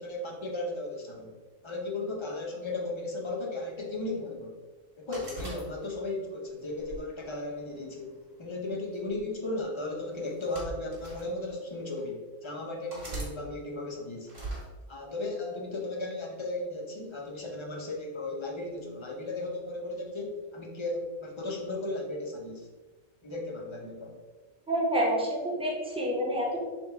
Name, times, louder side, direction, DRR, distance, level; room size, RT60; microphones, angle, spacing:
voice 1, 0.0-1.3 1.6-4.6 5.0-14.3 14.9-22.7 23.2-24.2, left 2 dB, 40° left, -1 dB, 0.4 m, -35 dB
sound 1, 5.1-6.2 6.8-8.0 8.9-9.2 10.2-11.3 12.0-12.1 12.9-13.3 14.3-14.7, right 2 dB, 50° right, 2.0 m, -40 dB
voice 2, 24.7-26.6, equal, 5° right, -3 dB, 0.6 m, -28 dB
4.1 x 2.2 x 4.3 m, 1.3 s
omnidirectional pair, 1.4 m